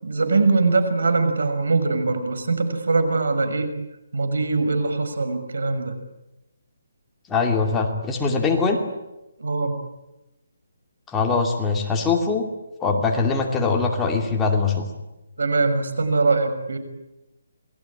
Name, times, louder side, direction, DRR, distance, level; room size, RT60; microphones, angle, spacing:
voice 1, 0.0-3.7 4.1-5.9 9.4-9.8 15.4-16.8, right 3 dB, 80° right, 10 dB, 6.3 m, -22 dB
voice 2, 7.3-8.8 11.1-12.5 12.8-14.9, left 4 dB, 10° left, 1 dB, 2.6 m, -22 dB
27.5 x 21.5 x 10.0 m, 0.98 s
hypercardioid pair, 170°, 0 cm